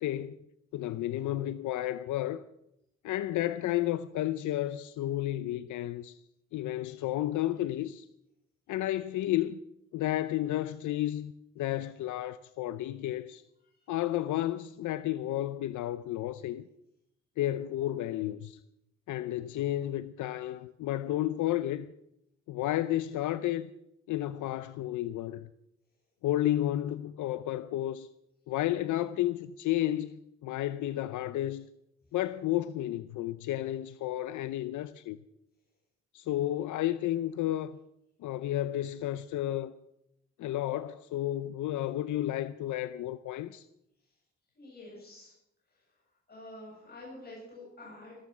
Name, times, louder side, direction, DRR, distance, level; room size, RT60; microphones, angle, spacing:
voice 1, 0.0-0.4 0.7-2.4 3.0-6.2 6.5-8.1 8.7-9.6 9.9-13.4 13.9-16.6 17.4-18.6 19.1-21.9 22.5-23.7 24.1-25.5 26.2-28.1 28.5-31.7 32.1-35.2 36.1-37.8 38.2-39.7 40.4-43.7, left 13 dB, 75° left, 0.6 m, -32 dB
voice 2, 44.5-45.3 45.7-45.8 46.3-48.2, left 1 dB, 30° left, 7.7 m, -48 dB
14.5 x 14.0 x 6.1 m
cardioid pair, 90°, 30 cm